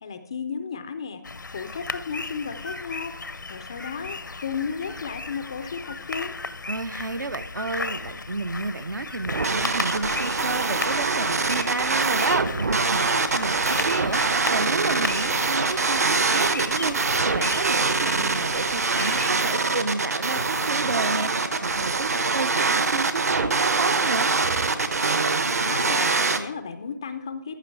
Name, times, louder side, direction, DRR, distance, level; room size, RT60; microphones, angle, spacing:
voice 1, 0.0-1.2 1.5-6.3 25.6-27.6, left 6 dB, 15° left, 9 dB, 0.3 m, -34 dB
sound 1, 1.2-19.3, left 3 dB, 80° left, 0.6 m, -35 dB
voice 2, 6.7-24.3, right 3 dB, 75° right, 16 dB, 0.7 m, -31 dB
sound 2, 9.2-26.4, right 4 dB, 55° right, 1.0 m, -24 dB
14.5 x 6.1 x 4.5 m, 0.76 s
figure-of-eight pair, 160°, 10 cm